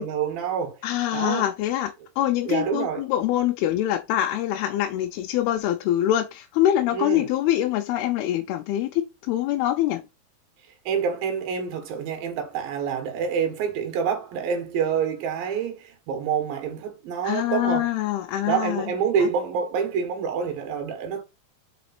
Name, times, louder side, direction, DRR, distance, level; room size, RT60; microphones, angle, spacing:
voice 1, 0.0-0.8 1.1-1.5 2.5-3.0 6.9-7.3 10.9-17.9 18.5-21.2, right 7 dB, 70° right, 3.4 m, -27 dB
voice 2, 0.8-10.0 17.2-18.9 19.2-19.3, left 12 dB, 85° left, 2.7 m, -24 dB
5.9 x 5.1 x 4.3 m
omnidirectional pair, 4.5 m